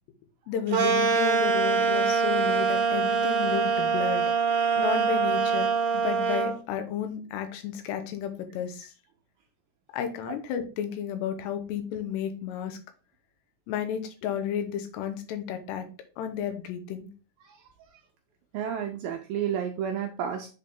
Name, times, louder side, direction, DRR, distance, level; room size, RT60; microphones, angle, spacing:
voice 1, 0.5-4.3 4.8-5.7 5.9-8.9 9.9-12.8 13.7-15.9 16.2-17.1, left 9 dB, 85° left, 8 dB, 3.0 m, -32 dB
sound 1, 0.7-6.5, right 5 dB, 70° right, 2.0 m, -24 dB
voice 2, 18.5-20.5, right 8 dB, 85° right, 4 dB, 2.1 m, -31 dB
7.4 x 3.8 x 3.6 m, 0.34 s
omnidirectional pair, 4.8 m